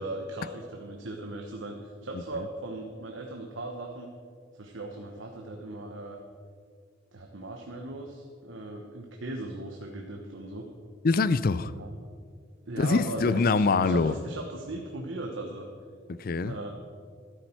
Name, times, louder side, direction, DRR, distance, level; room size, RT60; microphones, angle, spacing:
voice 1, 0.0-4.1 4.5-6.2 7.1-10.7 11.7-11.9 12.7-15.7 16.4-16.7, right 2 dB, 80° right, 1.1 m, -38 dB
voice 2, 11.0-11.7 12.8-14.1 16.1-16.5, left 4 dB, 50° left, 0.4 m, -24 dB
13.0 x 12.0 x 4.5 m
head